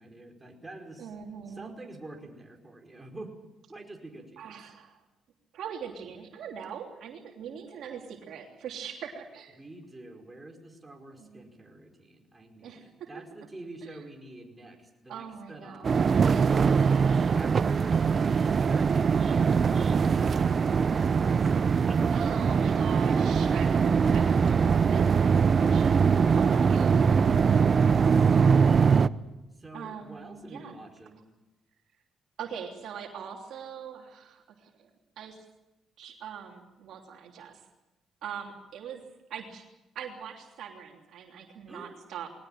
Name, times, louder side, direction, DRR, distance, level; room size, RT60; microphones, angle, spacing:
voice 1, 0.0-1.1 1.5-3.3 3.7-4.6 9.6-16.5 16.9-22.0 29.6-31.2 41.7-42.0, right 2 dB, 20° right, 1 dB, 5.0 m, -47 dB
voice 2, 1.0-1.7 4.4-5.0 5.5-9.6 11.1-11.4 12.6-13.1 13.8-14.0 15.1-16.5 22.1-24.3 24.9-25.9 26.3-26.9 27.5-27.6 28.3-28.5 29.7-30.8 32.4-34.7 35.2-35.4 36.0-37.6 38.2-39.0 39.3-39.6 39.9-42.3, right 8 dB, 75° right, 1 dB, 3.1 m, -42 dB
sound 1, 15.8-29.1, right 6 dB, 45° right, 0.7 m, -22 dB
21.0 x 18.5 x 9.0 m, 0.99 s
cardioid pair, 90°, 0 cm